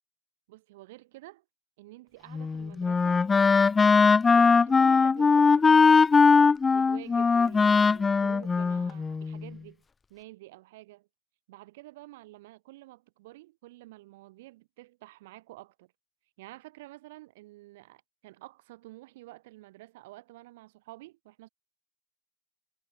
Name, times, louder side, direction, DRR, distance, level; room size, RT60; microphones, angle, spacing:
voice 1, 0.5-1.4 1.8-3.3 4.3-6.1 6.7-9.8 10.1-11.1 11.5-15.9 16.4-21.5, right 18 dB, 75° right, 6.7 m, -49 dB
Wind instrument woodwind instrument, 2.3-9.5, left 4 dB, 25° left, 0.8 m, -21 dB
hypercardioid pair, 75°, 0 cm